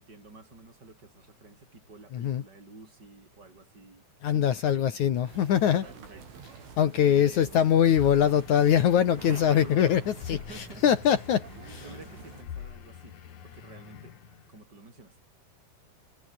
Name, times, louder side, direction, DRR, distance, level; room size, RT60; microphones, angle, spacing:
voice 1, 0.0-4.9 5.8-7.7 9.3-10.9 11.8-14.2 14.5-15.2, right 3 dB, 20° right, 7.5 m, -50 dB
voice 2, 2.1-2.4 4.2-5.8 6.8-10.4 10.8-11.8, left 9 dB, 75° left, 1.7 m, -23 dB
sound 1, 5.3-12.4, right 5 dB, 65° right, 8.9 m, -47 dB
sound 2, 7.9-14.6, left 9 dB, 50° left, 2.4 m, -45 dB
omnidirectional pair, 5.9 m